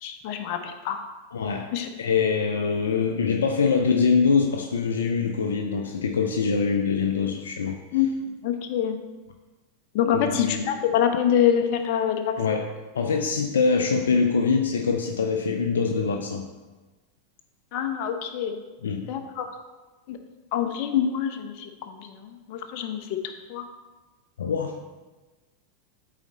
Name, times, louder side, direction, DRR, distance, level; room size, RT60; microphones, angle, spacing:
voice 1, 0.0-1.0 1.7-1.9 7.9-9.0 9.9-12.6 17.7-18.6 19.1-19.5 20.1-20.2 20.5-23.2 23.5-23.6, left 9 dB, 55° left, 6 dB, 0.8 m, -26 dB
voice 2, 1.3-1.7 2.0-7.8 10.1-10.6 12.4-12.7 12.9-16.5 18.8-19.1 24.4-24.8, left 5 dB, 80° left, 4 dB, 0.5 m, -24 dB
8.2 x 4.2 x 4.1 m, 1.2 s
hypercardioid pair, 95°, 0 cm